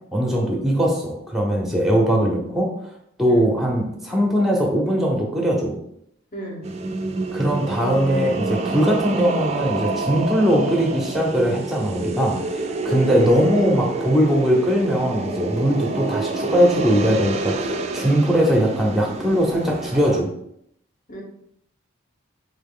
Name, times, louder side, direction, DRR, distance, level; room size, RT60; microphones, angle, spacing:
voice 1, 0.1-2.7 3.2-5.8 7.3-20.3, equal, ahead, -1 dB, 0.8 m, -20 dB
voice 2, 6.3-6.6 12.8-13.1 15.8-16.0 21.1-21.2, equal, 40° left, 0 dB, 1.0 m, -32 dB
sound 1, 6.6-20.2, right 3 dB, 30° right, 0.3 m, -28 dB
3.9 x 3.2 x 3.7 m, 0.74 s
head